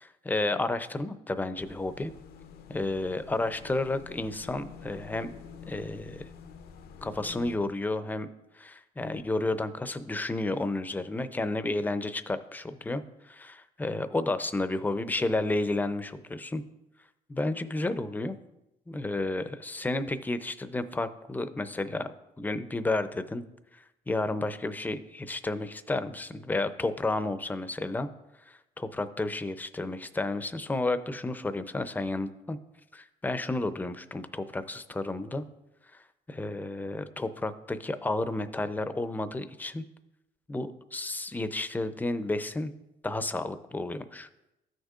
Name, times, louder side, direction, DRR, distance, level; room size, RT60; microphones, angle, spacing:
voice 1, 0.0-2.1 2.7-5.3 5.7-6.3 7.0-8.3 8.5-16.6 17.3-18.4 18.9-22.1 22.4-23.4 23.7-28.1 28.5-32.6 32.9-35.4 36.3-39.8 40.5-42.7 43.0-44.3, left 2 dB, 10° left, 11 dB, 0.5 m, -31 dB
sound 1, 1.5-7.6, left 6 dB, 65° left, 0.6 m, -48 dB
13.5 x 6.5 x 2.4 m, 0.93 s
cardioid pair, 110°, 17 cm